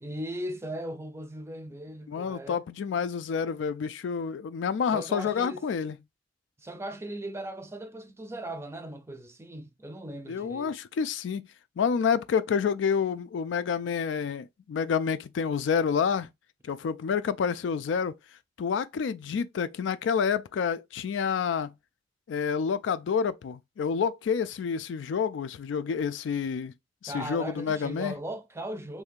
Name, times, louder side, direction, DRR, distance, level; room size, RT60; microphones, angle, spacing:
voice 1, 0.0-2.6 4.9-5.6 6.6-10.7 27.1-29.0, right 1 dB, 15° right, 0.5 m, -38 dB
voice 2, 2.1-5.9 10.3-11.5 11.8-16.3 16.6-18.2 18.6-21.7 22.3-26.7 27.0-28.1, left 6 dB, 85° left, 0.3 m, -28 dB
3.2 x 2.6 x 3.6 m
head